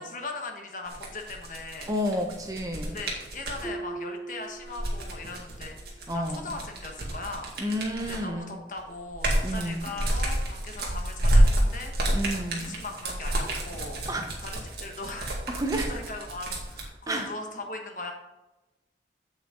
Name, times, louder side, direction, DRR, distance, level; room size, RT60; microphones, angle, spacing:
voice 1, 0.0-1.9 2.8-7.7 8.1-14.0 14.4-15.3 15.9-18.1, left 3 dB, 45° left, 3 dB, 1.3 m, -39 dB
sound 1, 0.9-3.6 4.6-8.3 8.8-16.8, right 1 dB, 60° right, 2.1 m, -28 dB
voice 2, 1.9-3.0 6.1-6.5 7.6-8.6 9.4-9.8 12.1-12.8 14.1-14.3 15.5-15.9 17.1-17.3, equal, 20° right, 4 dB, 0.8 m, -30 dB
Harp, 3.6-5.4 5.7-6.2 6.7-6.8, right 3 dB, 10° left, 1.1 m, -40 dB
8.3 x 7.8 x 3.8 m, 1.0 s
head